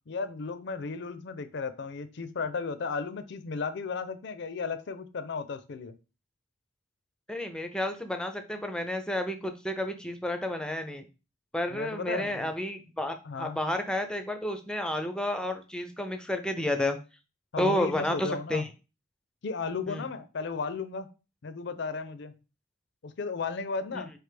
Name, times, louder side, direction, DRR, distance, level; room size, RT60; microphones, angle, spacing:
voice 1, 0.1-6.0 11.7-12.5 13.2-13.6 17.5-18.7 19.4-21.1 21.4-22.4 23.0-24.1, left 4 dB, 60° left, 12 dB, 0.5 m, -34 dB
voice 2, 7.3-11.0 11.5-17.0 17.6-18.7 19.9-20.1 23.9-24.0, left 1 dB, 5° left, 6 dB, 0.5 m, -31 dB
4.4 x 3.3 x 3.3 m, 0.31 s
head